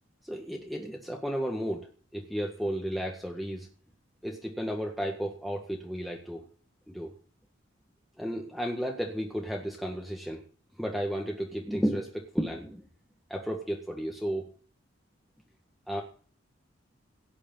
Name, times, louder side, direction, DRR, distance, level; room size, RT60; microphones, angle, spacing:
voice 1, 0.2-1.9 2.1-3.7 4.2-6.5 6.9-7.1 8.2-10.4 10.8-12.9 13.3-14.5 15.9-16.0, equal, ahead, 1 dB, 1.7 m, -33 dB
17.0 x 6.5 x 9.2 m, 0.43 s
head